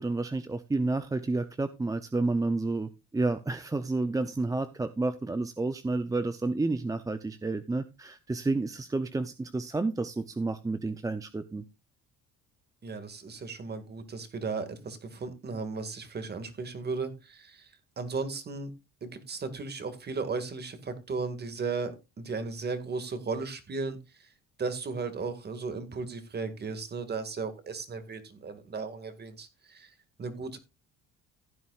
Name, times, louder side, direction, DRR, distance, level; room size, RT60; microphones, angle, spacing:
voice 1, 0.0-11.6, right 3 dB, 10° right, 11 dB, 0.5 m, -30 dB
voice 2, 12.8-18.7 19.0-21.9 22.2-24.3 24.6-30.6, right 4 dB, 35° right, 9 dB, 2.0 m, -36 dB
15.5 x 9.3 x 2.4 m, 0.25 s
cardioid pair, 120°, 31 cm